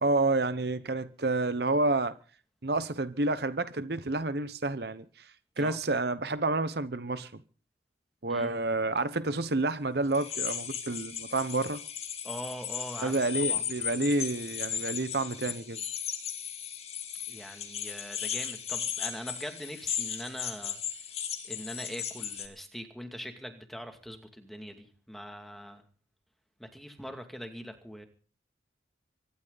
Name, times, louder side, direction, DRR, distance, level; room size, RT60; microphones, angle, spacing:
voice 1, 0.0-2.1 2.6-5.3 5.6-7.4 8.2-11.8 13.0-15.8, right 2 dB, 55° right, 0.9 m, -29 dB
sound 1, 10.1-22.5, left 8 dB, 35° left, 2.5 m, -36 dB
voice 2, 12.2-13.7 17.3-20.8 21.4-25.8 26.6-28.1, equal, ahead, 2.4 m, -42 dB
24.5 x 12.5 x 4.1 m
head